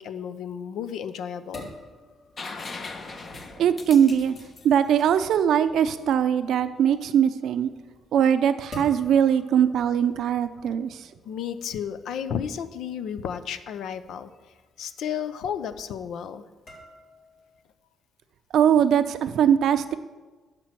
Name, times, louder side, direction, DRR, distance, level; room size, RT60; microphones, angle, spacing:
voice 1, 0.0-1.7 11.2-14.3 14.8-16.4, left 8 dB, 80° left, 11 dB, 0.6 m, -32 dB
sound 1, 0.9-17.6, left 1 dB, 60° left, 3.8 m, -50 dB
sound 2, 2.4-6.1 7.9-8.0, left 3 dB, 45° left, 1.0 m, -40 dB
voice 2, 3.6-4.3 4.6-7.7 8.1-11.0 18.5-19.9, right 8 dB, 75° right, 11 dB, 0.5 m, -21 dB
11.5 x 4.5 x 7.6 m, 1.3 s
cardioid pair, 90°, 0 cm